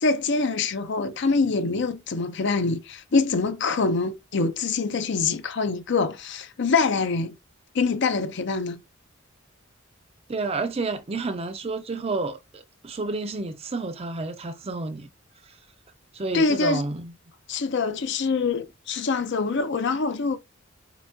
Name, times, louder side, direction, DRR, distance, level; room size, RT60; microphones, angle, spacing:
voice 1, 0.0-7.4 7.7-8.8 16.3-16.8 17.5-20.4, left 4 dB, 55° left, 0.6 m, -25 dB
voice 2, 10.3-15.1 16.1-17.1, right 3 dB, 30° right, 0.5 m, -30 dB
6.8 x 2.4 x 2.6 m
head